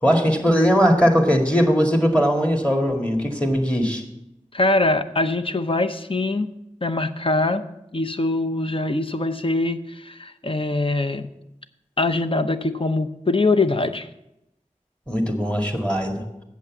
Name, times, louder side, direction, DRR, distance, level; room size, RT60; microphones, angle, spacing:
voice 1, 0.0-4.0 15.1-16.3, equal, 10° left, 3 dB, 1.9 m, -19 dB
voice 2, 4.5-6.5 6.8-7.6 7.9-11.3 12.0-14.1, left 2 dB, 40° left, 9 dB, 0.7 m, -23 dB
8.5 x 7.1 x 7.2 m, 0.86 s
wide cardioid pair, 40°, 13 cm